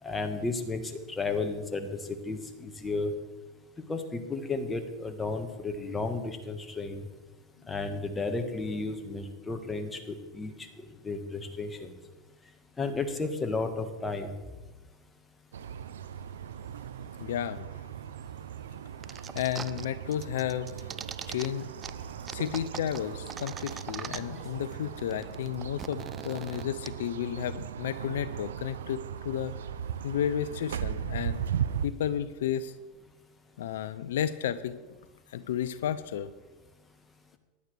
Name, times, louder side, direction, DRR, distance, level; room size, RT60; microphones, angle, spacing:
voice 1, 0.0-3.1 3.9-7.0 7.7-11.9 12.8-14.3, left 3 dB, 15° left, 6 dB, 1.5 m, -33 dB
sound 1, 15.5-31.9, right 9 dB, 85° right, 0.5 m, -38 dB
voice 2, 17.2-17.7 19.1-20.9 21.3-21.7 22.3-29.5 30.0-31.4 31.8-32.8 33.6-34.8 35.3-36.3, left 10 dB, 80° left, 14 dB, 0.5 m, -32 dB
sound 2, 19.0-19.9 20.1-21.5 21.8-21.9 22.3-24.5 24.7-24.8 25.0-26.9, right 7 dB, 30° right, 0.5 m, -40 dB
sound 3, 21.1-25.6 26.3-26.4, right 1 dB, 5° right, 4.3 m, -54 dB
16.0 x 10.5 x 3.3 m, 1.2 s
hypercardioid pair, 100°, 0 cm